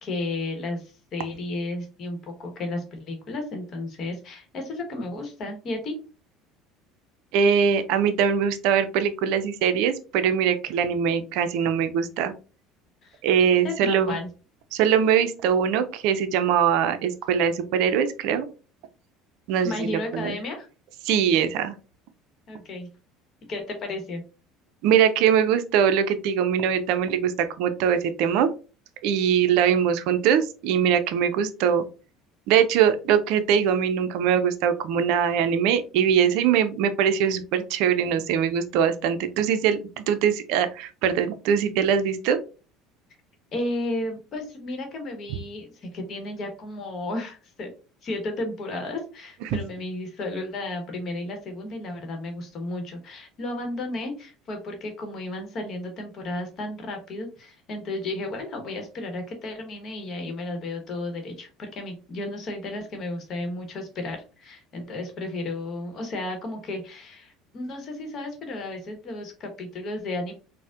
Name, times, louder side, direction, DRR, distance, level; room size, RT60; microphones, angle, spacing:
voice 1, 0.0-5.9 13.0-13.2 13.6-14.3 19.6-20.7 22.5-22.9 23.5-24.2 43.5-47.7 48.0-70.3, left 2 dB, 50° left, 5 dB, 1.0 m, -33 dB
voice 2, 7.3-12.3 13.2-14.2 14.7-18.5 19.5-20.4 21.0-21.7 24.8-28.5 29.0-31.8 32.5-42.4 49.5-49.6, right 8 dB, 70° right, 10 dB, 0.4 m, -22 dB
4.1 x 2.0 x 2.4 m, 0.35 s
hypercardioid pair, 80°, 0 cm